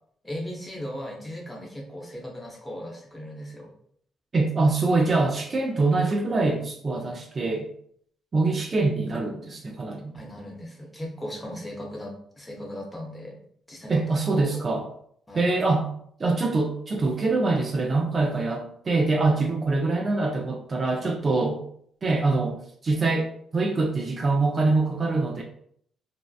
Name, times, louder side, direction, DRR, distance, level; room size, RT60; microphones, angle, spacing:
voice 1, 0.2-3.7 10.1-13.4 13.7-14.6 15.3-15.5, equal, 15° left, -1 dB, 0.7 m, -37 dB
voice 2, 4.3-7.7 8.3-10.1 13.9-14.9 15.4-15.9 16.2-21.6 22.0-22.6 22.8-25.4, right 3 dB, 35° right, 2 dB, 0.3 m, -24 dB
2.6 x 2.0 x 2.3 m, 0.65 s
cardioid pair, 90°, 0 cm